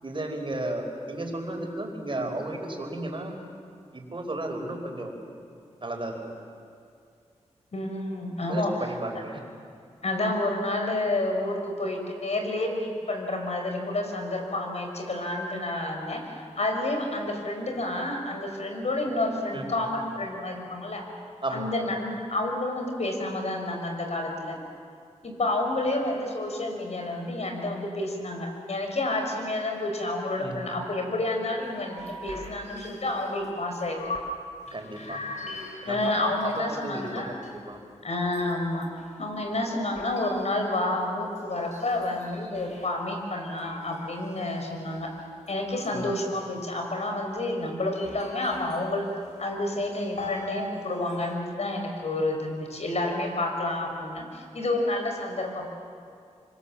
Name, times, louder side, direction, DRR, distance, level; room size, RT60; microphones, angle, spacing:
voice 1, 0.0-3.3 3.9-5.2 5.8-6.2 8.5-9.4 19.5-19.8 21.4-21.9 30.4-30.8 34.7-35.2 35.8-36.0 36.4-37.8 45.9-46.0, right 1 dB, 45° right, 3 dB, 5.0 m, -34 dB
voice 2, 7.7-8.7 10.0-21.1 21.5-24.6 25.2-34.1 35.8-37.4 38.0-38.9 39.2-45.1 45.5-49.1 49.4-55.7, left 2 dB, 65° left, 3 dB, 5.3 m, -29 dB
sound 1, 31.6-34.4 34.7-37.8 38.2-42.9 43.6-46.6 47.4-48.9 49.2-50.7 51.0-51.3, left 2 dB, 80° left, 3.6 m, -42 dB
26.0 x 25.5 x 7.4 m, 2.3 s
cardioid pair, 50°, 12 cm